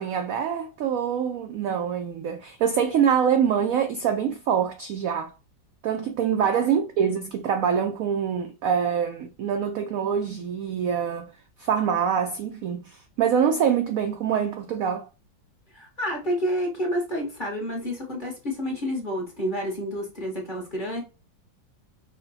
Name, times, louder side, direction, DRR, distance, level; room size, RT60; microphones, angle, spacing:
voice 1, 0.0-5.3 5.8-11.3 11.6-15.0, right 7 dB, 85° right, 0.7 m, -25 dB
voice 2, 15.7-21.0, equal, 35° left, 0.9 m, -29 dB
5.3 x 2.1 x 4.0 m
omnidirectional pair, 2.0 m